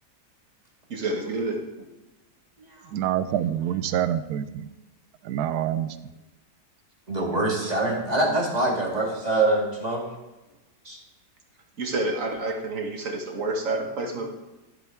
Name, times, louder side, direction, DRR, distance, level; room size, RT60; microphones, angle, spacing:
voice 1, 0.9-1.6 11.8-14.3, right 2 dB, 50° right, 2 dB, 1.8 m, -28 dB
voice 2, 2.9-4.7 5.2-6.0, right 10 dB, 75° right, 13 dB, 1.1 m, -26 dB
voice 3, 7.1-10.1 10.8-11.0, right 2 dB, 25° right, 0 dB, 1.7 m, -24 dB
13.0 x 7.6 x 3.5 m, 1.0 s
omnidirectional pair, 1.8 m